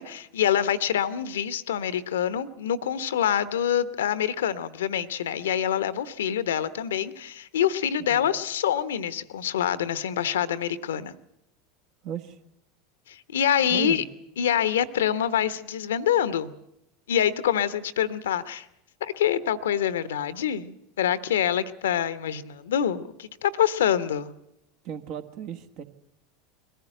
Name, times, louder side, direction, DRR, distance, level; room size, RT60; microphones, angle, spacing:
voice 1, 0.0-11.1 13.1-14.0 14.4-16.5 17.1-18.7 19.0-24.3, left 9 dB, 70° left, 15 dB, 0.9 m, -26 dB
voice 2, 12.0-12.4 13.7-14.0 24.8-25.8, right 9 dB, 50° right, 8 dB, 1.4 m, -35 dB
22.0 x 15.0 x 8.9 m, 0.84 s
figure-of-eight pair, 75°, 0 cm